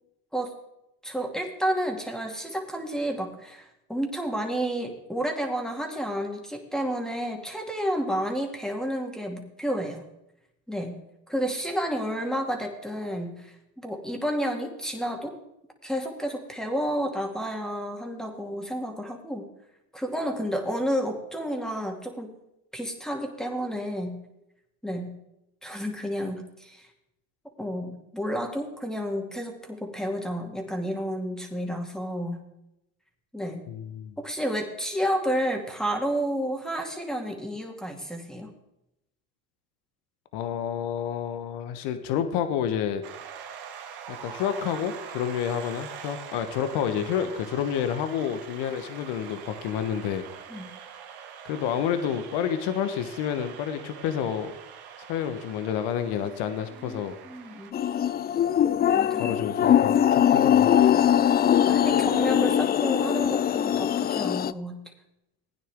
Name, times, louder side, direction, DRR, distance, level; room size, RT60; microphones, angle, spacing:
voice 1, 1.0-10.0 10.7-11.0 11.3-15.4 15.8-19.5 19.9-22.3 22.7-24.2 24.8-25.2 25.6-26.9 27.6-32.4 33.3-33.6 34.2-38.5 50.5-50.7 56.8-57.7 58.9-59.4 61.5-64.8, equal, ahead, 2 dB, 2.5 m, -31 dB
voice 2, 33.7-34.1 40.3-43.0 44.1-50.2 51.4-54.5 55.1-57.2 59.1-61.1, left 8 dB, 70° left, 9 dB, 1.2 m, -29 dB
sound 1, 43.0-57.7, right 8 dB, 65° right, 1.8 m, -43 dB
sound 2, 57.7-64.5, left 10 dB, 25° left, 0.3 m, -21 dB
16.5 x 9.4 x 3.6 m, 0.86 s
supercardioid pair, 75°, 41 cm